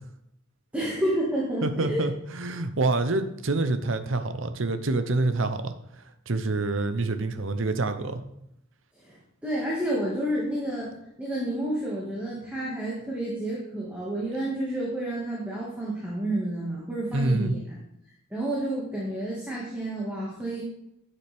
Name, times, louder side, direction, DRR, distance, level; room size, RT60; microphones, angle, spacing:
voice 1, 0.7-2.0 9.0-9.2 9.4-10.9 11.2-17.8 18.3-20.6, right 1 dB, 5° right, -6 dB, 1.9 m, -30 dB
voice 2, 1.6-5.7 6.3-8.2 17.1-17.5, right 2 dB, 65° right, 9 dB, 0.8 m, -26 dB
12.0 x 7.1 x 3.5 m, 0.80 s
head